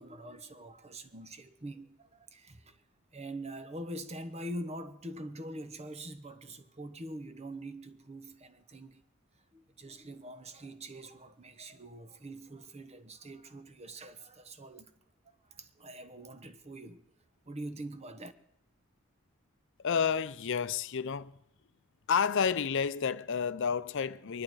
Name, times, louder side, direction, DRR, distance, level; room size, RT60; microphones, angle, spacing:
voice 1, 0.0-2.8 3.1-9.0 9.5-14.9 15.5-17.0 17.5-18.3, right 1 dB, 30° right, 1.0 m, -44 dB
voice 2, 19.8-21.3 22.1-24.4, left 6 dB, 60° left, 0.6 m, -30 dB
24.0 x 11.5 x 4.8 m
head